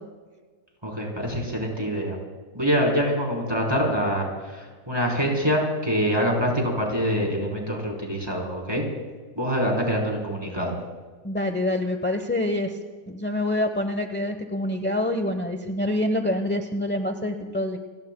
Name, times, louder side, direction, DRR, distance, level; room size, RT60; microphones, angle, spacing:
voice 1, 0.8-2.2 2.5-8.9 9.4-10.8, equal, 15° right, -1 dB, 3.7 m, -25 dB
voice 2, 11.2-12.8 13.1-17.8, left 1 dB, 10° left, 6 dB, 0.5 m, -26 dB
29.0 x 19.0 x 2.2 m, 1.5 s
omnidirectional pair, 1.6 m